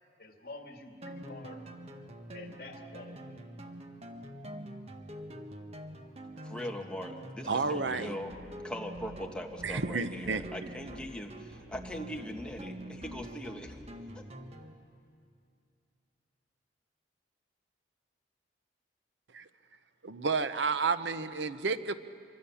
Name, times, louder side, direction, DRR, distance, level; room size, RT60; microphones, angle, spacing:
voice 1, 0.2-1.6 2.3-3.4, left 2 dB, 55° left, 4 dB, 2.2 m, -48 dB
sound 1, 1.0-14.7, right 1 dB, 35° right, 1.4 m, -45 dB
voice 2, 6.4-13.8 14.1-14.2, equal, 5° left, 2 dB, 1.6 m, -41 dB
voice 3, 7.5-8.1 9.6-10.5 19.3-19.4 20.0-21.9, right 4 dB, 80° right, 12 dB, 0.8 m, -31 dB
25.5 x 24.0 x 7.1 m, 2.4 s
head